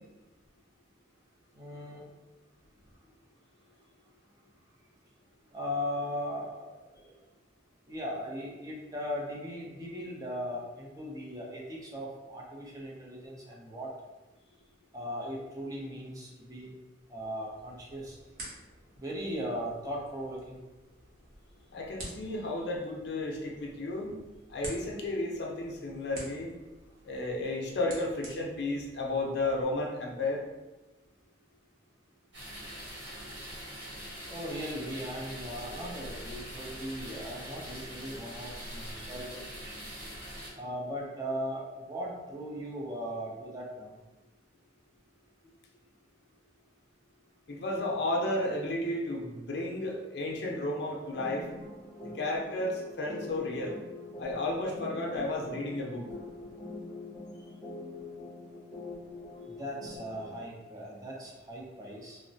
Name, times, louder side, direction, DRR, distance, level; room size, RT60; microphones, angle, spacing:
voice 1, 1.5-2.0 5.5-6.6 7.9-13.9 14.9-16.7 17.1-18.2 19.0-20.6 34.3-40.0 40.6-43.9 59.6-62.2, equal, 20° right, -3 dB, 0.5 m, -38 dB
sound 1, 17.5-29.6, right 1 dB, 50° right, 0.8 m, -50 dB
voice 2, 21.7-24.1 24.5-26.5 27.0-30.4 47.5-51.5 52.1-53.8 54.2-56.1, left 2 dB, 65° left, -1 dB, 0.5 m, -33 dB
sound 2, 32.3-40.5, equal, 80° right, 1.2 m, -43 dB
sound 3, 51.1-60.4, left 2 dB, 20° left, 0.6 m, -44 dB
3.0 x 2.1 x 2.6 m, 1.1 s
head